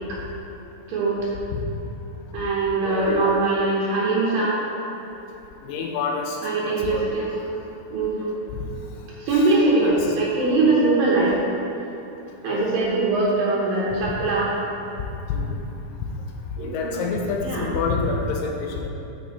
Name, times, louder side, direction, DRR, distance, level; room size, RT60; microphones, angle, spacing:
voice 1, 0.9-1.2 2.3-4.6 6.4-7.6 7.9-8.4 9.2-11.4 12.4-14.5 16.6-17.1 17.4-17.7, right 3 dB, 75° right, -5 dB, 2.5 m, -22 dB
voice 2, 2.8-3.3 5.6-6.4 6.7-7.1 9.3-9.4 9.8-10.0 10.6-10.7 12.5-12.7 15.3-15.6 16.6-18.9, left 4 dB, 80° left, 1 dB, 2.1 m, -27 dB
7.0 x 6.1 x 4.1 m, 2.9 s
omnidirectional pair, 4.5 m